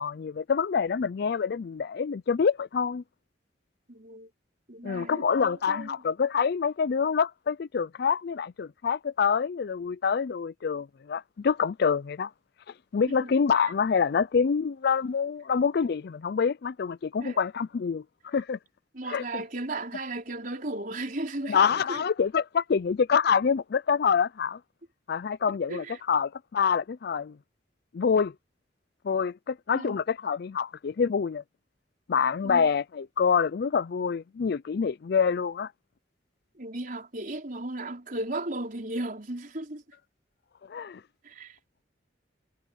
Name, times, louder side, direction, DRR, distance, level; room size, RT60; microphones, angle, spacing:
voice 1, 0.0-3.0 4.8-12.3 12.9-18.6 19.1-19.4 21.5-24.6 25.1-27.4 27.9-28.3 29.0-31.4 32.1-35.7 40.7-41.0, left 6 dB, 55° left, 0.4 m, -26 dB
voice 2, 3.9-4.3 4.7-6.0 13.2-13.3 17.2-17.4 18.9-21.6 21.9-22.0 25.7-26.0 29.7-30.0 32.4-32.7 36.6-39.8 41.2-41.5, right 2 dB, 45° right, 4.8 m, -35 dB
head